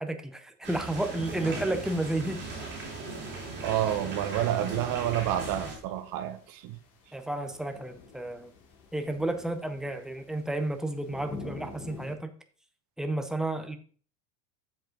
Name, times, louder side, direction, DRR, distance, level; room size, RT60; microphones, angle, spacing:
voice 1, 0.0-2.4 7.1-8.5 8.9-12.3 13.0-13.8, right 2 dB, ahead, 6 dB, 0.4 m, -31 dB
sound 1, 0.6-5.8, right 3 dB, 20° right, 3.5 m, -38 dB
sound 2, 3.2-12.2, left 4 dB, 75° left, 2.6 m, -50 dB
voice 2, 3.6-6.8, right 12 dB, 45° right, 9 dB, 1.2 m, -29 dB
7.6 x 7.4 x 3.8 m, 0.42 s
supercardioid pair, 145°, 47 cm